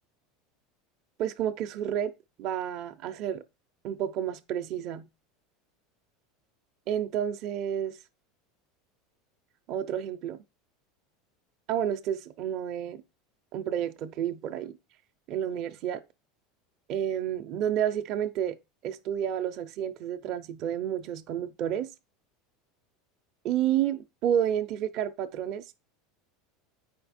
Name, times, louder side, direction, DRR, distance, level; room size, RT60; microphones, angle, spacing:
voice 1, 1.2-2.1 2.4-3.4 3.8-5.1 6.9-8.0 9.7-10.4 11.7-13.0 13.5-14.8 15.3-16.0 16.9-18.6 18.8-21.9 23.4-25.8, right 10 dB, 40° right, 0.6 m, -30 dB
8.7 x 5.1 x 4.3 m
supercardioid pair, 160°, 0 cm